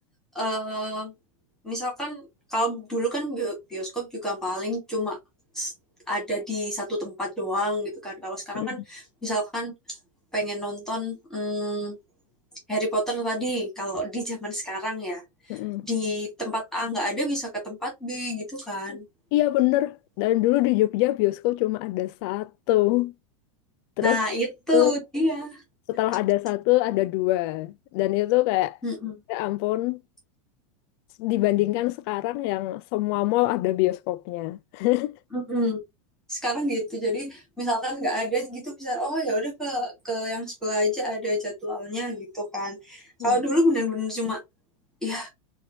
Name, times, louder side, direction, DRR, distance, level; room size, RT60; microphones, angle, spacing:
voice 1, 0.3-1.1 1.6-5.2 5.5-5.7 6.1-9.7 10.3-11.9 12.7-15.2 15.5-19.0 24.0-25.6 28.8-29.1 35.3-35.8 36.3-44.4 45.0-45.3, equal, 5° left, 1.2 m, -28 dB
voice 2, 15.5-15.9 18.9-19.0 19.3-23.1 24.0-24.2 24.7-24.9 25.9-28.8 29.3-30.0 31.2-35.2 43.2-43.4, left 17 dB, 50° left, 0.4 m, -24 dB
4.2 x 2.2 x 2.6 m
supercardioid pair, 135°, 16 cm